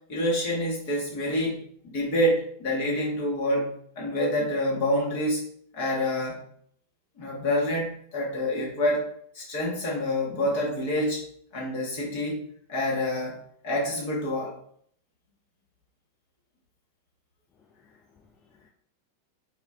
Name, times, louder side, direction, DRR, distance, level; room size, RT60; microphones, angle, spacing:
voice 1, 0.1-5.5 5.7-6.4 7.2-9.1 9.3-11.2 11.5-13.4 13.6-14.5, left 1 dB, 45° left, -3 dB, 1.0 m, -27 dB
voice 2, 17.6-18.7, left 5 dB, 25° left, 0 dB, 0.3 m, -62 dB
2.3 x 2.1 x 3.4 m, 0.65 s
figure-of-eight pair, 90°, 0 cm